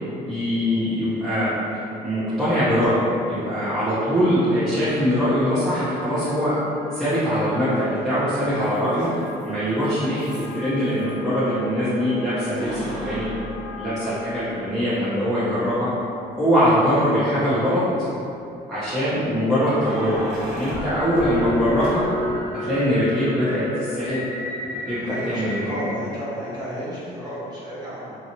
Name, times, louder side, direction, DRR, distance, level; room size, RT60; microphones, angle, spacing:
voice 1, 0.2-1.5 2.0-3.0 3.3-6.5 6.9-9.1 9.4-13.3 13.8-15.9 16.4-17.8 18.7-22.0 22.5-24.2 24.9-25.7, equal, ahead, -14 dB, 0.7 m, -22 dB
Keys jangling, 2.8-2.9 4.8-4.9 7.1-7.7 7.9-11.1 12.4-14.5 15.0-15.1 16.9-17.4 19.4-22.4, equal, 70° right, 1.0 m, -36 dB
sound 1, 3.4-14.7, left 2 dB, 90° left, 0.6 m, -39 dB
sound 2, 20.7-25.9, left 1 dB, 40° left, 0.7 m, -31 dB
voice 2, 25.0-28.2, equal, 25° right, -10 dB, 1.1 m, -33 dB
2.8 x 2.3 x 2.7 m, 2.7 s
cardioid pair, 110°, 17 cm